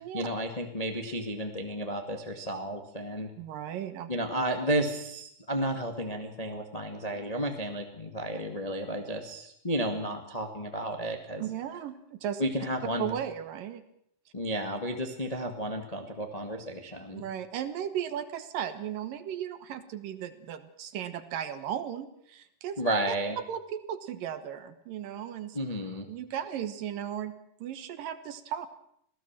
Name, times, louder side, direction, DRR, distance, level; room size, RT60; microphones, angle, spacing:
voice 1, 0.0-3.3 4.1-11.4 12.4-13.1 14.3-17.2 22.8-23.4 25.5-26.1, right 1 dB, 65° left, 4 dB, 0.3 m, -32 dB
voice 2, 3.4-4.1 11.4-12.4 13.0-13.8 17.1-22.8 23.1-23.2 23.5-25.6 26.1-27.3 27.6-28.7, right 9 dB, 65° right, 11 dB, 2.6 m, -36 dB
26.0 x 17.5 x 7.5 m, 0.71 s
omnidirectional pair, 4.8 m